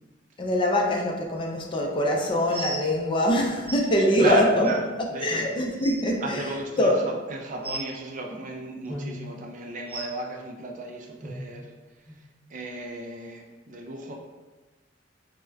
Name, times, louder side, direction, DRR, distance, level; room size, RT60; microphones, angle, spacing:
voice 1, 0.4-4.7 5.2-6.4 6.8-7.0, left 1 dB, 25° left, 0 dB, 0.4 m, -23 dB
sound 1, 2.5-2.8 3.7-3.8 4.6-4.7 5.3-5.4 5.7-6.0 7.6-7.9 8.9-9.1 9.9-10.1 11.2-11.3 12.1-12.2 12.8-12.9, right 1 dB, 10° right, 0.7 m, -35 dB
voice 2, 4.1-5.4 6.2-11.7 12.5-14.2, right 2 dB, 40° right, 1 dB, 0.4 m, -35 dB
4.6 x 2.1 x 2.3 m, 1.2 s
head